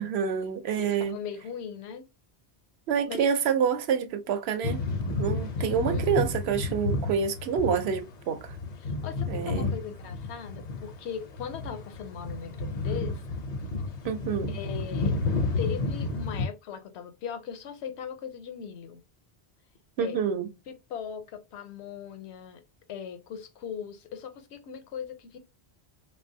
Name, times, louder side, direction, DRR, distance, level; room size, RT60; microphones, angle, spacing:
voice 1, 0.0-1.2 2.9-8.6 9.3-9.7 14.0-14.6 20.0-20.5, right 7 dB, 75° right, 0.8 m, -28 dB
voice 2, 0.8-2.1 3.1-3.2 5.6-6.2 8.8-13.2 14.5-15.2 15.6-19.0 20.0-20.2 20.7-22.6 22.9-25.4, left 7 dB, 80° left, 0.9 m, -39 dB
sound 1, 4.6-16.5, left 3 dB, 55° left, 0.5 m, -31 dB
3.2 x 2.2 x 2.6 m
omnidirectional pair, 1.1 m